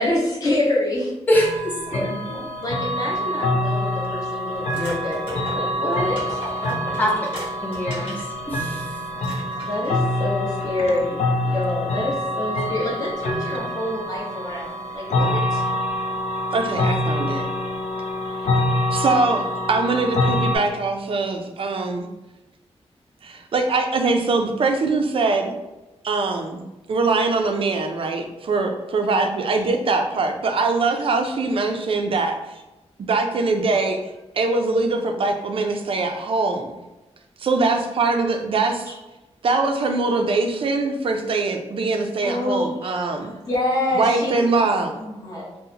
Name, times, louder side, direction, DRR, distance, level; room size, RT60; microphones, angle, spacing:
voice 1, 0.0-1.1 2.6-6.4 9.6-15.6 42.2-42.9 43.2-44.6 44.9-45.5, left 1 dB, 30° left, -5 dB, 0.9 m, -26 dB
sound 1, 1.3-20.6, left 1 dB, 80° left, 0.4 m, -26 dB
voice 2, 1.3-2.4 6.6-7.2 7.6-8.2 8.5-9.0, equal, 15° left, -2 dB, 0.5 m, -24 dB
sound 2, 4.7-8.3 8.7-8.8 9.2-10.0, equal, 50° left, 1.5 m, -37 dB
voice 3, 16.5-17.5 18.9-22.1 23.2-25.5 26.0-32.4 33.1-34.0 34.3-36.7 37.4-38.9 39.4-43.3 43.9-45.1, right 3 dB, 55° right, 5 dB, 0.4 m, -22 dB
3.8 x 2.0 x 2.7 m, 1.0 s
wide cardioid pair, 175°, 11 cm